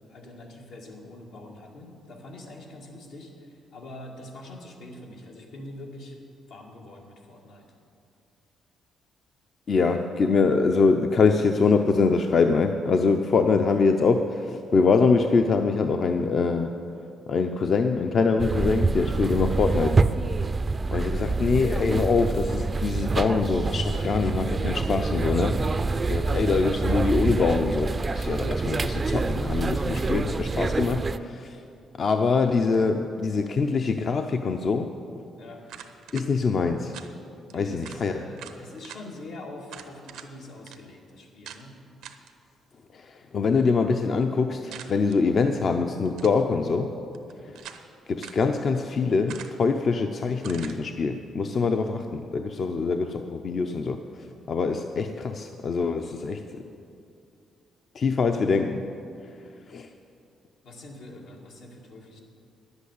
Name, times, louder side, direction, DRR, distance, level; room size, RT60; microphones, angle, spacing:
voice 1, 0.0-6.2 6.5-7.7 35.4-35.6 37.5-41.8 60.6-62.2, left 1 dB, 85° left, -1 dB, 2.1 m, -44 dB
voice 2, 9.7-16.8 17.3-20.0 20.9-25.6 26.1-31.6 32.0-34.9 36.1-36.9 37.5-38.2 42.9-46.9 47.4-47.6 48.1-56.6 57.9-58.8 59.7-59.9, left 4 dB, 50° left, 5 dB, 0.6 m, -24 dB
sound 1, 18.4-31.2, right 3 dB, 30° right, 0.4 m, -26 dB
sound 2, 35.7-36.3 36.9-37.1 37.5-37.6 37.8-38.0 38.4-39.0 39.7-40.3 40.7-40.8 41.4-41.6 42.0-42.3 44.7-45.2 46.0-46.5 47.1-47.9 48.2-48.4 49.3-49.7 50.4-50.8, right 9 dB, 90° right, 0.7 m, -43 dB
10.5 x 8.1 x 8.3 m, 2.5 s
cardioid pair, 90°, 0 cm